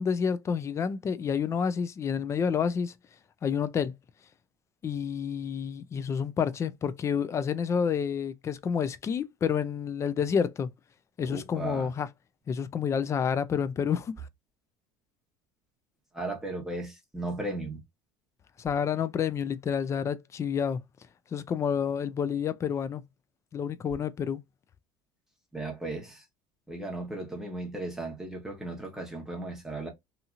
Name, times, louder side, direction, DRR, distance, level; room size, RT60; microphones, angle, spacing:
voice 1, 0.0-2.9 3.4-3.9 4.8-10.7 11.2-12.1 12.5-14.3 18.6-20.8 21.3-23.0 23.5-24.4, left 7 dB, 25° left, 0.4 m, -29 dB
voice 2, 11.3-11.9 16.1-17.8 25.5-26.2 26.7-29.9, right 2 dB, 5° right, 1.1 m, -36 dB
2.8 x 2.7 x 2.4 m
cardioid pair, 130°, 12 cm